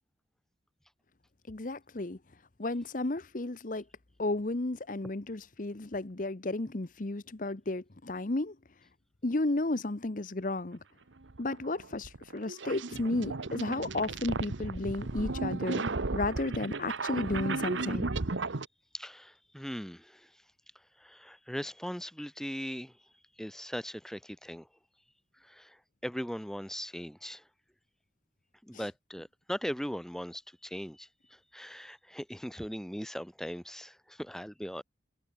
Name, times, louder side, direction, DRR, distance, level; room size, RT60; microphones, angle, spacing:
voice 1, 1.5-2.2 2.6-3.8 4.2-8.5 9.2-10.8 11.4-15.8 16.1-18.1 28.7-28.8, left 2 dB, 45° left, 0.9 m, -33 dB
sound 1, 11.2-18.6, right 3 dB, 85° right, 1.2 m, -34 dB
voice 2, 18.9-20.3 21.0-22.9 23.4-24.7 25.4-27.4 28.6-34.8, equal, ahead, 1.5 m, -39 dB
head